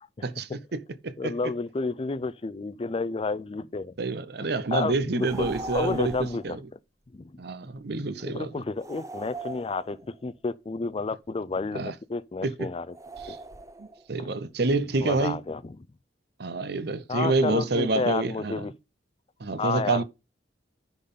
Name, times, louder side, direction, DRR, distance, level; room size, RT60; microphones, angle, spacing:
voice 1, 0.2-1.3 4.0-6.6 7.4-8.5 11.7-11.9 12.4-12.7 13.3-13.4 13.8-15.4 16.4-18.6 19.4-20.0, right 3 dB, 60° right, 0.7 m, -28 dB
voice 2, 1.2-3.9 4.7-6.6 7.1-7.4 8.3-12.9 14.2-14.3 15.0-15.8 17.1-18.7 19.6-20.0, left 3 dB, 30° left, 0.4 m, -31 dB
sound 1, 5.2-6.5 8.8-10.2 12.9-14.0, right 2 dB, 15° right, 0.5 m, -40 dB
10.0 x 4.0 x 5.4 m
head